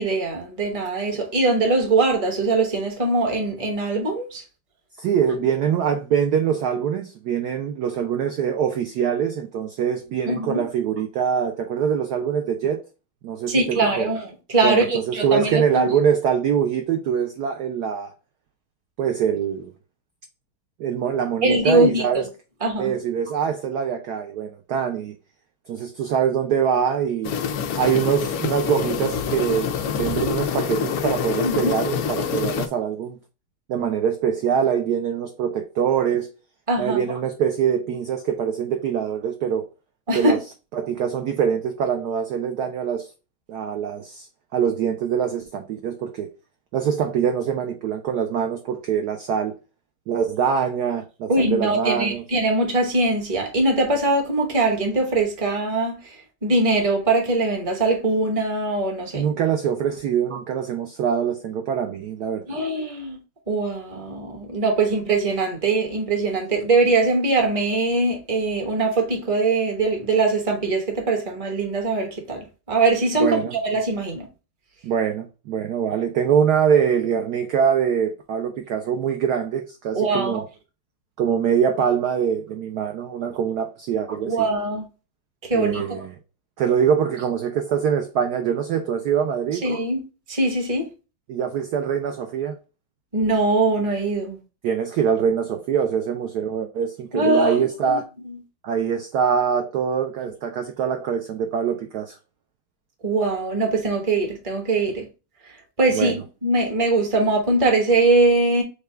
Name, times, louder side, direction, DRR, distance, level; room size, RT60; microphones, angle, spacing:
voice 1, 0.0-4.4 10.3-10.6 13.5-15.9 21.4-22.2 22.6-22.9 31.4-31.7 36.7-37.0 40.1-40.4 51.3-59.3 60.3-60.4 62.5-63.2 63.5-74.3 79.9-80.4 84.3-84.9 85.4-86.0 89.6-90.0 90.3-90.9 93.1-94.4 97.1-98.0 98.2-98.4 103.0-105.1 105.8-108.6, right 2 dB, 20° right, 0.9 m, -22 dB
voice 2, 5.0-12.8 13.2-14.1 14.6-18.1 19.0-19.7 20.8-22.3 22.8-25.2 25.7-27.4 27.7-33.2 33.7-36.3 36.8-39.7 40.1-40.4 40.7-43.1 43.5-44.3 44.5-46.3 46.7-49.5 50.1-52.2 59.1-62.6 73.2-73.6 74.8-80.5 81.2-84.5 85.5-86.1 86.6-89.6 91.3-92.6 94.6-98.0 98.6-102.2 105.9-106.2, right 7 dB, 75° right, 0.9 m, -24 dB
sound 1, 27.2-32.7, left 7 dB, 90° left, 0.8 m, -26 dB
6.7 x 2.3 x 3.3 m
omnidirectional pair, 2.3 m